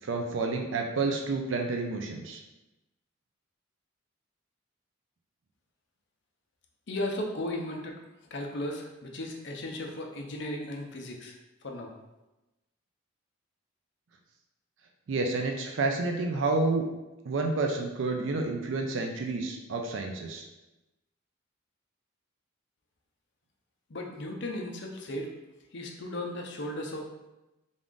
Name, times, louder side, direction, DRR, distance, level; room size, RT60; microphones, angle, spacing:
voice 1, 0.0-2.4 15.1-16.9 17.3-20.4, right 3 dB, 70° right, 3 dB, 0.4 m, -29 dB
voice 2, 6.9-8.0 8.3-11.4 11.6-11.9 23.9-25.3 25.7-27.0, left 1 dB, 60° left, 1 dB, 0.6 m, -35 dB
3.6 x 2.5 x 3.7 m, 1.0 s
head